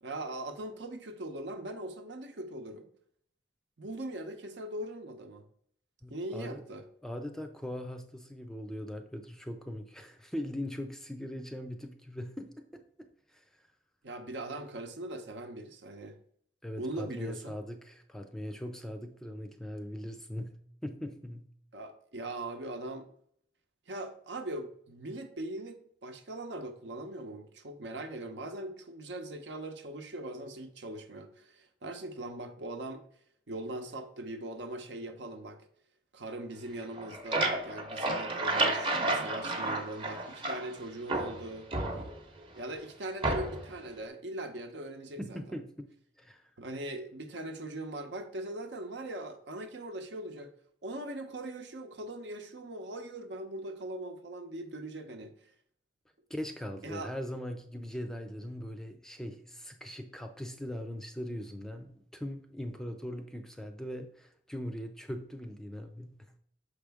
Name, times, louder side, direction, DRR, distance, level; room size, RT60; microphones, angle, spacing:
voice 1, 0.0-2.9 3.8-5.4 6.1-6.8 14.0-16.2 16.8-17.6 21.7-23.1 23.9-33.1 33.5-35.7 36.1-41.7 42.5-45.6 46.6-50.5 50.8-55.3 56.8-57.1, right 1 dB, 75° right, 0.8 m, -40 dB
voice 2, 6.0-6.6 7.0-12.8 13.3-13.4 16.6-21.5 45.2-45.9 46.2-46.4 56.3-66.3, equal, 5° left, 0.4 m, -40 dB
sound 1, 36.8-40.8 41.1-42.4 43.2-43.7, right 2 dB, 30° right, 0.8 m, -31 dB
6.6 x 4.9 x 3.5 m
head